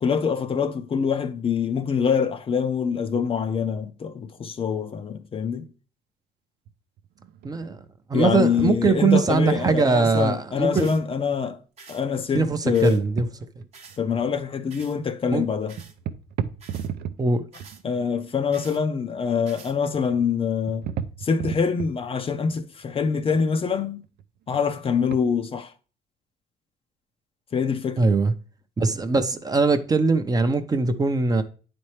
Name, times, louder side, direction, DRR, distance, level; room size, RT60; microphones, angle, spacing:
voice 1, 0.0-5.7 8.1-11.6 11.9-13.0 14.0-15.8 17.8-20.9 21.2-24.0 24.5-25.7 27.5-28.1, left 6 dB, 35° left, 0.5 m, -25 dB
sound 1, 6.7-6.8 7.0-8.0 8.3-10.1 10.8-11.1 12.9-13.6 13.9-14.4 14.8-15.0 15.2-15.4 15.8-17.3 17.6-18.2 19.7-20.2 20.6-22.5 23.0-24.2 24.5-24.7 25.0-25.2, right 9 dB, 70° right, 0.5 m, -35 dB
voice 2, 7.4-7.8 8.1-11.0 12.3-13.3 13.6-13.7 15.3-15.5 17.2-17.4 28.0-28.3 28.8-31.4, right 4 dB, 20° right, 0.6 m, -21 dB
sound 2, 10.8-11.0 11.8-12.0 12.7-13.0 13.7-14.0 14.7-15.0 15.7-16.0 16.6-16.9 17.5-17.8 18.5-18.8 19.5-19.8, right 5 dB, 40° right, 1.0 m, -47 dB
9.4 x 4.3 x 3.2 m
cardioid pair, 110°, 17 cm